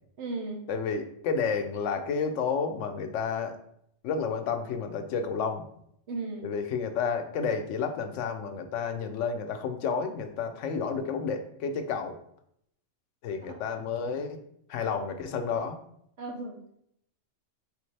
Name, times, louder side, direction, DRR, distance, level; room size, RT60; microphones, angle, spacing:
voice 1, 0.2-0.6 6.1-6.5 13.4-13.6 16.2-16.6, right 3 dB, 70° right, 1 dB, 1.0 m, -35 dB
voice 2, 0.7-3.6 4.0-5.6 6.4-12.2 13.2-14.4 14.7-15.8, left 5 dB, 80° left, 7 dB, 0.9 m, -31 dB
4.2 x 3.3 x 3.2 m, 0.71 s
omnidirectional pair, 1.3 m